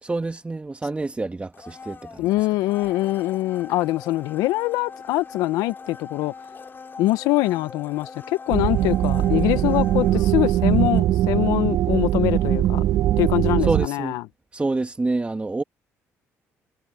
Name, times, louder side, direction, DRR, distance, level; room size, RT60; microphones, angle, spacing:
voice 1, 0.0-2.3 13.6-14.2 14.5-15.6, right 3 dB, 20° right, 1.9 m, -27 dB
Domestic sounds home sounds, 1.5-11.5 11.8-11.9, left 5 dB, 35° left, 6.9 m, -42 dB
voice 2, 2.2-6.3 7.0-12.8 13.2-14.2, left 17 dB, 80° left, 1.0 m, -23 dB
sound 1, 8.5-13.9, right 12 dB, 70° right, 1.5 m, -21 dB
supercardioid pair, 70°, 6 cm